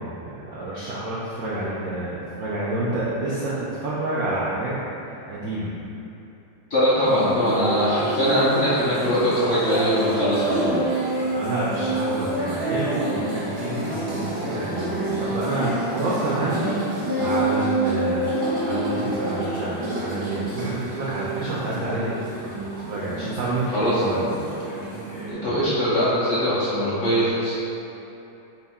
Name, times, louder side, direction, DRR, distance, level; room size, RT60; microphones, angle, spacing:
voice 1, 0.0-4.7 5.0-5.7 11.3-18.3 18.7-22.6 22.9-24.3, right 2 dB, 85° right, -7 dB, 0.7 m, -28 dB
voice 2, 6.7-10.8 23.7-24.0 25.3-27.7, equal, 65° left, -10 dB, 0.7 m, -22 dB
sound 1, 7.0-25.3, right 1 dB, 30° right, 0.5 m, -28 dB
4.4 x 2.1 x 4.2 m, 2.9 s
omnidirectional pair, 2.1 m